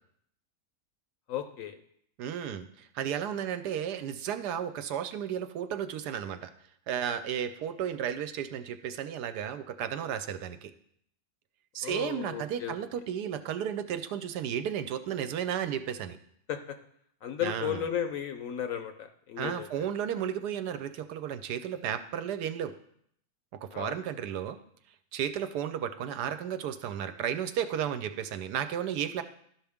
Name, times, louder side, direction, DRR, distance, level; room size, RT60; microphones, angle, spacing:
voice 1, 1.3-1.8 11.8-12.7 16.5-16.8 17.2-19.9 23.7-24.0, left 9 dB, 65° left, 7 dB, 0.9 m, -34 dB
voice 2, 2.2-6.5 6.9-10.7 11.7-16.2 17.4-17.8 19.4-22.7 23.6-24.6 25.1-29.2, right 9 dB, 75° right, 10 dB, 1.1 m, -33 dB
12.5 x 5.8 x 3.5 m, 0.69 s
omnidirectional pair, 1.8 m